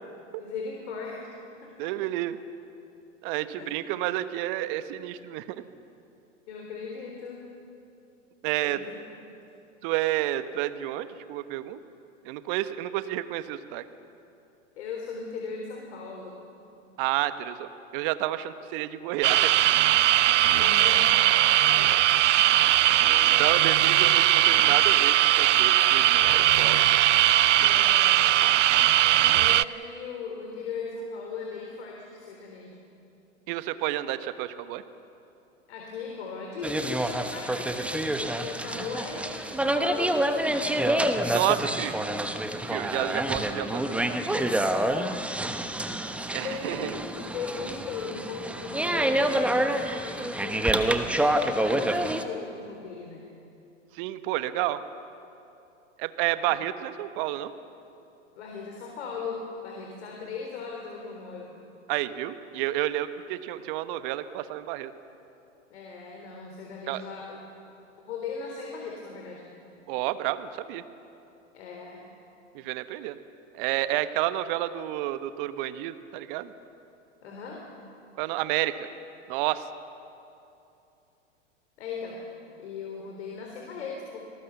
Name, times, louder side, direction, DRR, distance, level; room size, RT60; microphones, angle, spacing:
voice 1, 0.3-1.3 1.6-2.1 3.6-3.7 6.5-7.5 8.6-8.9 14.8-16.5 20.5-21.2 21.7-22.2 23.1-23.5 27.6-28.4 29.4-32.8 35.7-41.3 43.0-43.1 44.9-46.1 46.4-53.3 56.5-56.6 58.4-61.6 65.7-67.5 68.1-69.6 71.5-72.1 77.2-77.7 81.8-82.3 82.6-84.2, left 5 dB, 60° left, 0 dB, 3.8 m, -38 dB
voice 2, 1.8-2.4 3.2-5.6 8.4-8.8 9.8-11.8 12.2-13.8 17.0-19.5 22.6-22.8 23.4-26.8 33.5-34.8 41.3-42.0 42.7-44.2 46.3-46.9 53.9-54.8 56.0-57.5 61.9-64.9 66.9-67.0 69.9-70.8 72.5-73.2 73.5-76.5 78.2-78.9 79.3-79.7, right 14 dB, 45° right, 12 dB, 1.2 m, -30 dB
sound 1, 19.2-29.6, right 13 dB, 70° right, 0.6 m, -20 dB
sound 2, 36.6-52.2, right 1 dB, 5° right, 1.0 m, -27 dB
26.5 x 19.0 x 7.1 m, 2.7 s
figure-of-eight pair, 100°, 38 cm